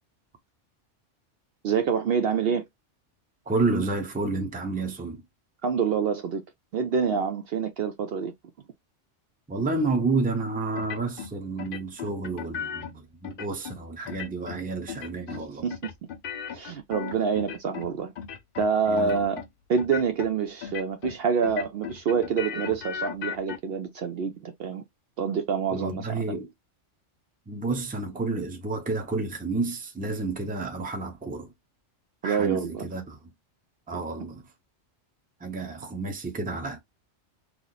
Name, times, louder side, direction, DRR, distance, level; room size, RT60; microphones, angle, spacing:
voice 1, 1.6-2.6 5.6-6.4 6.7-8.3 15.6-15.9 16.5-18.1 18.6-19.4 19.7-24.8 25.2-26.2 32.2-32.8, right 6 dB, 65° right, 0.7 m, -26 dB
voice 2, 3.5-5.2 9.5-15.6 18.9-19.2 25.7-26.5 27.5-31.5 32.2-33.2 33.9-34.4 35.4-36.8, right 3 dB, 10° right, 0.5 m, -30 dB
sound 1, 10.8-11.3 11.6-12.9 13.2-13.8 14.1-14.6 14.9-15.4 15.7-17.9 18.2-18.7 19.0-19.5 19.8-20.3 20.6-21.2 21.4-23.6, left 7 dB, 55° left, 0.7 m, -36 dB
3.0 x 2.0 x 3.8 m
omnidirectional pair, 1.2 m